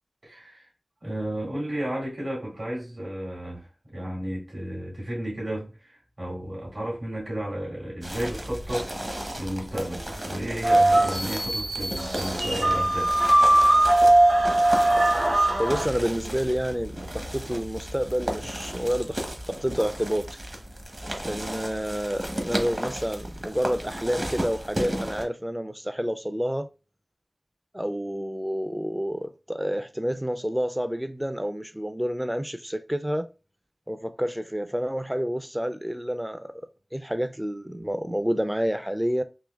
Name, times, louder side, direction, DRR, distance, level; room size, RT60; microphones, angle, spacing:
voice 1, 0.2-0.7 1.0-8.9 9.4-13.1, right 1 dB, 70° right, 2.0 m, -33 dB
sound 1, 8.0-25.2, right 1 dB, 35° right, 0.8 m, -34 dB
sound 2, 10.6-15.8, right 1 dB, 90° right, 0.9 m, -20 dB
voice 2, 15.6-20.2 21.2-26.7 27.7-33.3 33.9-36.5 36.9-39.2, equal, 10° right, 0.4 m, -29 dB
3.9 x 2.8 x 2.2 m
wide cardioid pair, 60°, 0 cm